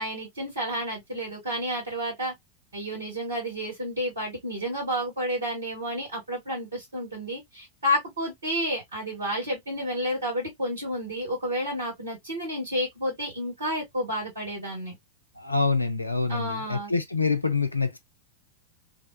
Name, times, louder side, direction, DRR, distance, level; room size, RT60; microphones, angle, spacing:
voice 1, 0.0-2.3 2.7-14.9 16.3-16.9, equal, 70° right, 1.5 m, -30 dB
voice 2, 15.4-18.0, left 4 dB, 85° left, 0.4 m, -26 dB
2.6 x 2.2 x 2.3 m
figure-of-eight pair, 90°, 0 cm